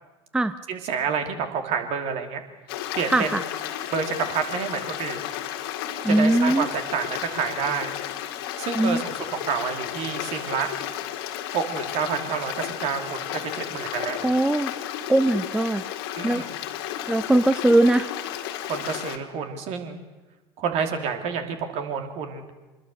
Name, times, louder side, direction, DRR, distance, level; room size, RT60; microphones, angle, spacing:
voice 1, 0.7-2.4 2.9-3.4 3.9-5.2 6.1-7.9 8.6-10.7 11.5-14.2 16.1-16.5 18.6-20.0 20.6-22.4, right 6 dB, 50° right, 6 dB, 3.0 m, -29 dB
Stream, 2.7-19.2, left 11 dB, 60° left, 1.9 m, -33 dB
voice 2, 3.1-3.4 6.0-6.7 8.8-9.0 14.2-14.7 15.1-15.8 16.2-16.4 17.1-18.1, right 1 dB, 5° right, 13 dB, 0.8 m, -20 dB
25.5 x 21.0 x 6.7 m, 1.2 s
figure-of-eight pair, 65°, 14 cm